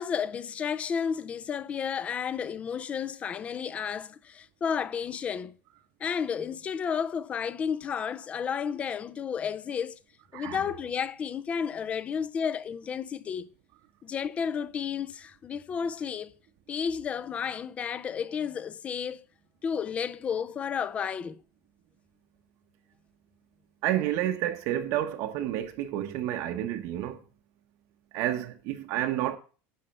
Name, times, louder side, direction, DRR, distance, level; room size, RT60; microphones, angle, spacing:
voice 1, 0.0-5.5 6.0-10.0 10.3-13.5 14.0-16.3 16.7-19.2 19.6-21.4, left 7 dB, 20° left, 0.4 m, -32 dB
voice 2, 23.8-27.2 28.1-29.4, right 12 dB, 55° right, 0.9 m, -30 dB
10.5 x 4.1 x 6.9 m
cardioid pair, 165°, 6 cm